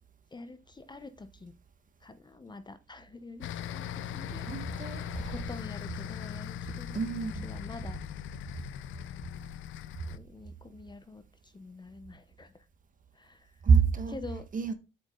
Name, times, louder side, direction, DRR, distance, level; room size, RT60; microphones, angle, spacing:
voice 1, 0.3-1.5 2.0-4.5 4.9-7.1 7.4-8.0 10.1-12.7 13.1-13.6 14.1-14.5, left 3 dB, 20° left, 0.8 m, -46 dB
sound 1, 3.4-10.2, left 10 dB, 80° left, 0.5 m, -39 dB
voice 2, 4.4-5.3 6.9-7.5 13.6-14.2 14.5-14.7, right 5 dB, 40° right, 1.2 m, -26 dB
8.0 x 5.2 x 3.8 m
cardioid pair, 90°, 20 cm